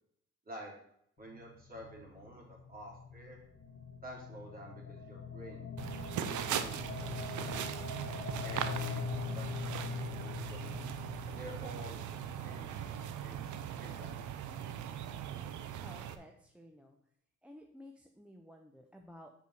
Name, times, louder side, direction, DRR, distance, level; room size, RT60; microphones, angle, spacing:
sound 1, 1.2-13.4, left 7 dB, 45° left, 0.8 m, -44 dB
voice 1, 1.2-3.4 4.0-5.7 6.1-7.8 8.4-10.8 11.2-12.9 13.2-13.5 13.8-14.4, right 1 dB, 30° right, -2 dB, 3.2 m, -50 dB
sound 2, 5.8-16.2, right 9 dB, 80° right, 0.7 m, -39 dB
voice 2, 15.8-17.1 17.4-19.3, left 1 dB, 5° right, 2 dB, 0.7 m, -54 dB
5.5 x 4.7 x 6.4 m, 0.71 s
cardioid pair, 90°, 30 cm